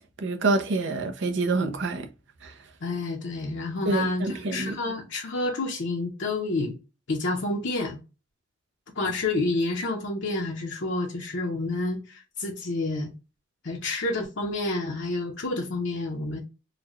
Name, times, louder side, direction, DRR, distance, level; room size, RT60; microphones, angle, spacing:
voice 1, 0.0-2.1 2.4-2.5 3.8-4.8, right 3 dB, 65° right, 0.6 m, -27 dB
voice 2, 2.8-6.8 7.1-8.0 9.0-13.1 13.6-16.4, left 2 dB, 65° left, 0.7 m, -29 dB
4.0 x 2.2 x 2.9 m
head